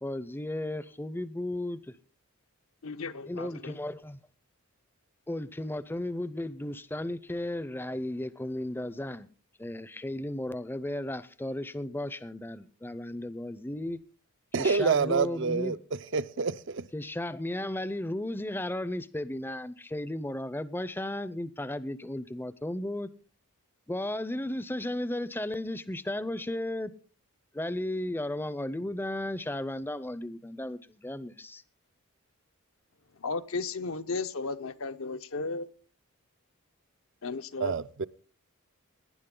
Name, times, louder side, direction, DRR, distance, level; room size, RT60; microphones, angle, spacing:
voice 1, 0.0-2.0 3.3-4.2 5.3-9.3 9.6-14.0 14.6-15.8 16.9-23.1 23.9-26.9 27.5-31.6, left 1 dB, 10° left, 0.5 m, -34 dB
voice 2, 2.8-3.8 33.2-35.7 37.2-37.7, left 4 dB, 70° left, 0.8 m, -34 dB
voice 3, 14.5-15.8 16.1-16.9 37.6-38.1, right 5 dB, 55° right, 0.5 m, -27 dB
18.0 x 10.5 x 3.8 m
head